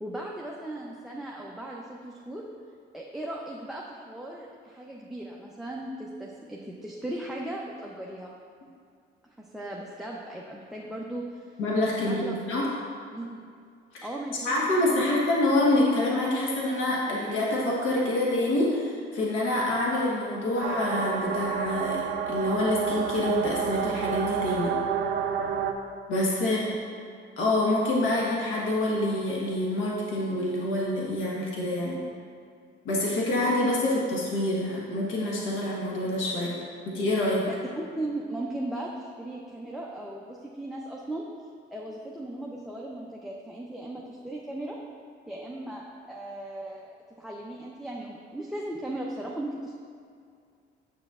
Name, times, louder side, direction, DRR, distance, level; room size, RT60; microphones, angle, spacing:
voice 1, 0.0-2.4 2.9-8.3 9.4-11.5 12.0-12.3 13.1-13.4 14.0-15.2 26.4-26.6 37.8-41.2 41.7-44.8 45.3-46.9 47.2-49.8, right 1 dB, ahead, -3 dB, 0.6 m, -37 dB
voice 2, 11.6-12.7 13.9-14.1 14.4-22.0 22.3-24.8 26.1-26.6 27.4-32.0 32.8-36.6 36.9-37.5, left 1 dB, 80° left, -4 dB, 1.2 m, -26 dB
sound 1, 20.6-25.7, right 7 dB, 60° right, 0.5 m, -29 dB
7.9 x 6.7 x 2.4 m, 2.2 s
cardioid pair, 90°, 20 cm